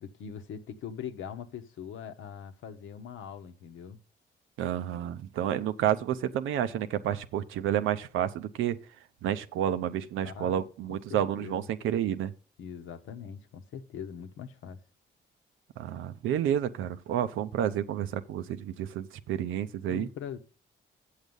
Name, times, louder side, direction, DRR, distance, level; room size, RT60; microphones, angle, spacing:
voice 1, 0.0-4.0 10.2-11.7 12.6-14.8 19.9-20.4, left 8 dB, 80° left, 0.9 m, -42 dB
voice 2, 4.6-8.8 9.2-12.3 15.8-20.1, right 10 dB, 85° right, 0.6 m, -30 dB
8.0 x 6.7 x 5.3 m
supercardioid pair, 65°, 20 cm